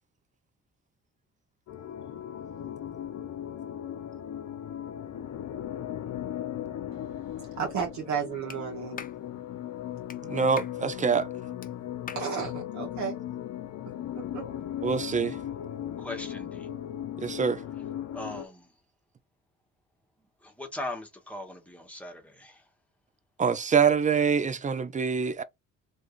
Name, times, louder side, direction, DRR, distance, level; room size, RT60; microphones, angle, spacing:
sound 1, 1.7-18.5, left 10 dB, 65° left, 0.7 m, -37 dB
voice 1, 7.6-9.0 12.1-13.2 14.2-14.5, right 6 dB, 70° right, 1.2 m, -33 dB
Clapping, 8.5-8.6 9.0-9.2 10.1-10.2 10.6-10.8 11.6-11.7 12.1-12.3, left 7 dB, 30° left, 0.5 m, -41 dB
voice 2, 10.2-11.3 14.8-15.4 17.2-17.6 23.4-25.4, right 6 dB, 25° right, 0.4 m, -25 dB
voice 3, 16.0-16.7 17.3-17.4 18.1-18.7 20.4-22.6, left 1 dB, 5° left, 1.2 m, -39 dB
2.6 x 2.6 x 3.6 m
cardioid pair, 90°, 30 cm